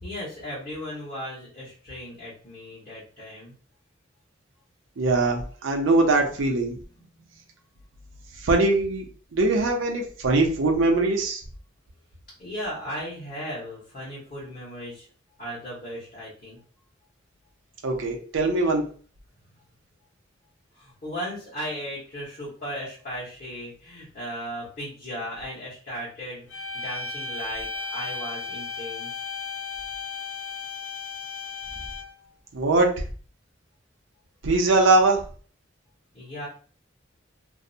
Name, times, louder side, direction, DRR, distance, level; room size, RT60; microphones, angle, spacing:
voice 1, 0.0-3.5 6.3-6.4 6.6-7.4 12.4-15.1 15.4-16.6 20.7-29.1 36.1-36.5, equal, 45° left, -8 dB, 1.0 m, -36 dB
voice 2, 5.0-6.8 8.4-9.1 9.3-11.4 17.8-18.8 32.5-32.9 34.4-35.2, right 2 dB, 85° right, 2 dB, 0.6 m, -21 dB
sound 1, 26.5-32.2, left 4 dB, 75° left, 0.5 m, -35 dB
2.6 x 2.0 x 2.6 m, 0.41 s
head